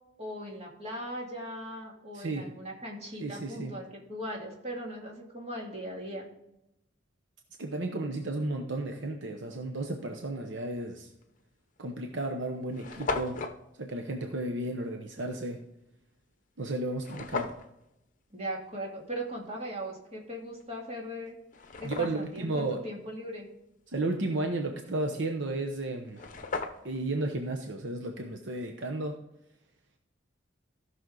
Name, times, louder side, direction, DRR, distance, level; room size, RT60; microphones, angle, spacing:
voice 1, 0.2-6.3 18.3-21.4 21.8-23.5, equal, 35° right, -2 dB, 2.5 m, -39 dB
voice 2, 2.1-2.5 3.2-3.8 7.6-11.1 11.8-13.4 13.8-15.6 16.6-17.5 21.8-22.8 23.9-26.2 26.8-29.2, right 2 dB, 70° right, 3 dB, 0.9 m, -33 dB
sound 1, 11.2-11.4 12.1-12.2 12.4-12.5 12.7-13.6 17.0-17.7 20.6-20.7 21.2-22.4 25.7-25.8 26.1-27.1, left 3 dB, 45° left, 0.8 m, -36 dB
15.5 x 6.2 x 3.9 m, 0.88 s
head